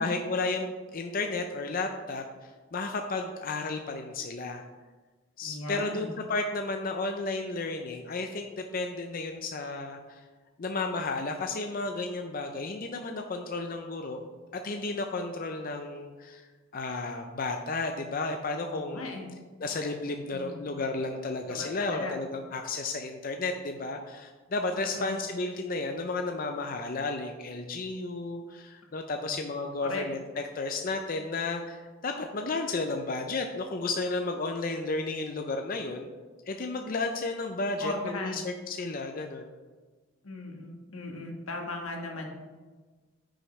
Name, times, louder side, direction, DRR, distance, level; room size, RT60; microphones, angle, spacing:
voice 1, 0.0-4.6 5.4-10.2 10.6-14.2 14.5-16.4 16.7-19.1 19.6-36.1 36.5-39.5, left 3 dB, 45° left, 4 dB, 0.5 m, -33 dB
voice 2, 5.4-6.1 18.6-19.3 20.3-20.6 21.4-22.2 24.8-25.2 29.1-29.3 29.8-30.0 37.8-38.4 40.2-42.3, left 2 dB, 90° left, 1 dB, 1.5 m, -37 dB
9.6 x 6.3 x 3.2 m, 1.3 s
head